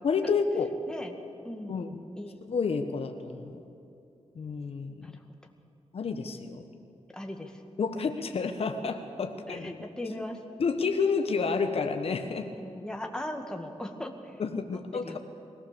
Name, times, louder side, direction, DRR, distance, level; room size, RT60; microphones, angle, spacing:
voice 1, 0.0-0.7 1.7-1.9 2.5-3.5 4.3-5.1 5.9-6.6 7.8-9.9 10.6-12.5 14.4-15.2, left 5 dB, 60° left, 6 dB, 1.3 m, -30 dB
voice 2, 0.9-1.2 1.4-1.9 2.2-2.4 5.0-5.1 7.1-7.6 9.3-10.4 12.6-14.4 15.0-15.2, left 1 dB, 5° left, 3 dB, 2.1 m, -38 dB
23.0 x 17.5 x 7.0 m, 2.8 s
cardioid pair, 95°, 11 cm